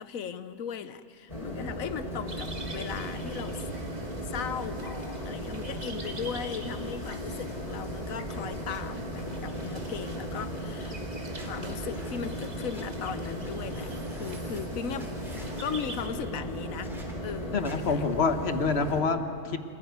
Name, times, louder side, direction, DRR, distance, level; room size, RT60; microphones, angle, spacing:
voice 1, 0.0-3.6 4.2-11.0 11.4-15.1 15.6-18.0, left 7 dB, 80° left, 12 dB, 1.3 m, -38 dB
sound 1, 1.3-19.0, equal, 25° left, 3.3 m, -36 dB
sound 2, 2.3-16.1, right 2 dB, 30° right, 1.8 m, -46 dB
sound 3, 9.4-10.8 11.3-12.8 13.4-13.5 13.7-14.6 15.0-15.7 16.8-17.1 17.6-17.7, equal, ahead, 3.6 m, -53 dB
voice 2, 17.5-19.6, left 4 dB, 50° left, 8 dB, 1.4 m, -27 dB
26.5 x 15.5 x 9.4 m, 2.3 s
omnidirectional pair, 1.4 m